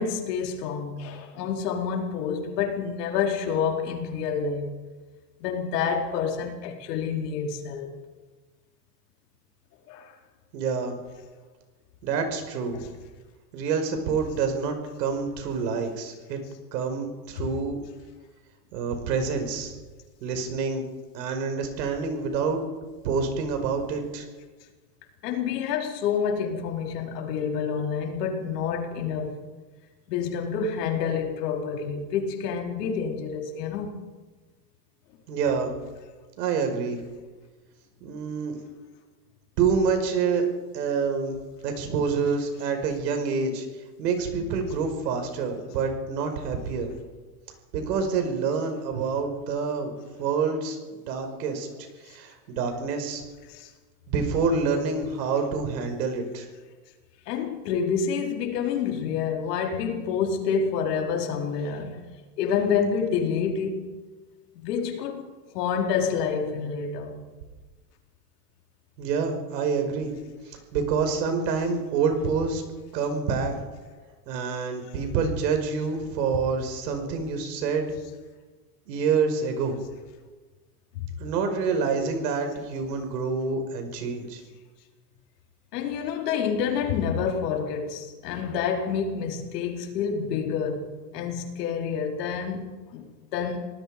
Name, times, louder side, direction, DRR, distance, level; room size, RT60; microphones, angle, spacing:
voice 1, 0.0-4.7 5.4-8.0 9.9-10.1 25.2-29.5 30.1-34.0 53.5-53.7 57.3-62.0 62.4-63.9 64.5-67.2 81.0-81.1 85.7-93.6, left 6 dB, 70° left, 4.5 m, -28 dB
voice 2, 10.5-11.0 12.0-12.9 13.5-16.4 16.7-17.8 18.7-19.8 20.2-20.9 21.1-22.6 23.0-24.3 35.3-35.7 36.4-37.0 38.0-38.6 39.6-40.4 40.7-43.7 44.0-46.9 47.7-51.7 52.0-53.2 54.1-56.5 69.0-70.1 70.5-72.6 72.9-73.5 74.3-77.9 78.9-79.8 81.2-84.4, right 5 dB, 75° right, 5.5 m, -27 dB
27.5 x 19.0 x 5.1 m
supercardioid pair, 125°, 49 cm